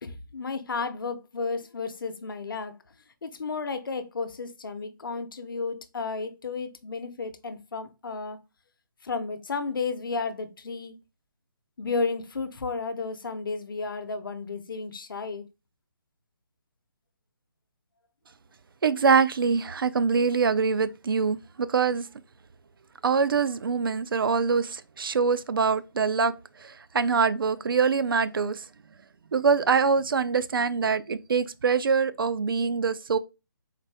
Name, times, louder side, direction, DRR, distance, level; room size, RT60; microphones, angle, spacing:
voice 1, 0.0-2.7 3.2-8.4 9.0-10.9 11.8-15.5, left 4 dB, 70° left, 0.7 m, -33 dB
voice 2, 18.8-22.1 23.0-28.6 29.3-33.2, right 5 dB, 75° right, 0.4 m, -24 dB
4.1 x 2.6 x 3.3 m
hypercardioid pair, 160°, 12 cm